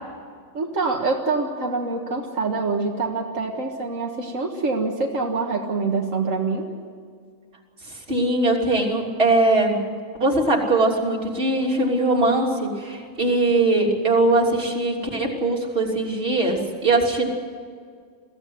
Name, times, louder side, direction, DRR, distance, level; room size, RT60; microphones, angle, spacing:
voice 1, 0.5-6.7, right 3 dB, 85° right, 1 dB, 2.0 m, -25 dB
voice 2, 8.1-9.8 10.2-17.3, right 2 dB, 50° right, -1 dB, 3.6 m, -21 dB
23.0 x 15.5 x 9.5 m, 2.1 s
omnidirectional pair, 1.3 m